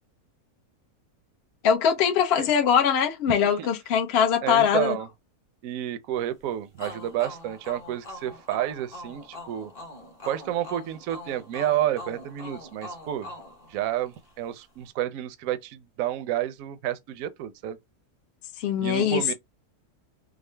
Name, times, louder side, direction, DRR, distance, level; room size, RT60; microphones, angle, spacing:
voice 1, 1.6-5.0 18.6-19.3, left 8 dB, 55° left, 0.7 m, -22 dB
voice 2, 3.3-3.7 4.4-5.1 5.6-9.7 10.3-13.3 13.7-17.8 18.8-19.3, right 12 dB, 70° right, 0.9 m, -30 dB
sound 1, 6.8-14.4, left 1 dB, 30° left, 1.0 m, -43 dB
3.6 x 2.0 x 3.2 m
omnidirectional pair, 1.6 m